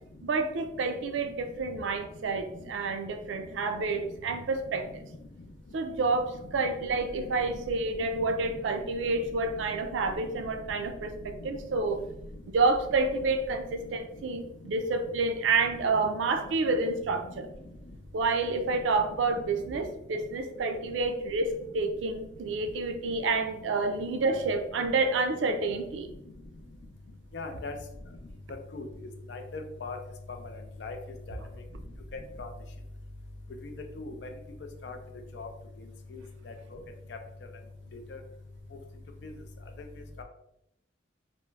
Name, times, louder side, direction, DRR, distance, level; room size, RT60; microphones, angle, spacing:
voice 1, 0.2-5.0 5.7-12.0 12.5-17.5 18.1-26.1, right 3 dB, 85° right, 7 dB, 0.4 m, -29 dB
voice 2, 27.3-27.7 28.7-28.8 29.3-30.0 30.8-31.0 31.3-31.4 32.4-32.5 34.0-34.1 34.8-35.0 35.3-35.5 40.2-40.3, left 3 dB, 65° left, 5 dB, 0.4 m, -38 dB
2.3 x 2.0 x 3.2 m, 0.82 s
head